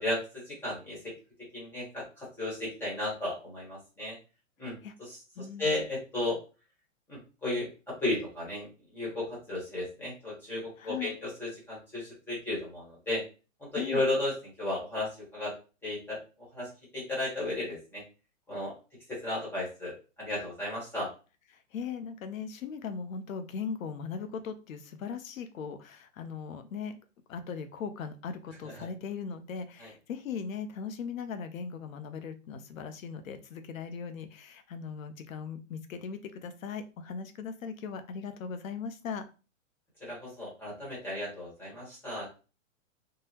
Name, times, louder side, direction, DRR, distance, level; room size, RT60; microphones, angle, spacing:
voice 1, 0.0-1.0 1.5-4.1 4.6-5.2 5.6-6.4 7.1-8.7 8.9-13.2 13.6-14.3 14.6-15.5 15.8-16.2 16.5-18.0 18.5-18.7 19.1-21.1 29.8-29.9 40.0-42.3, left 2 dB, 5° left, -6 dB, 1.1 m, -34 dB
voice 2, 5.4-5.7 10.8-11.2 13.8-14.0 21.5-26.9 27.3-39.3, left 6 dB, 80° left, 9 dB, 0.7 m, -39 dB
3.7 x 2.0 x 2.8 m, 0.33 s
hypercardioid pair, 160°, 40 cm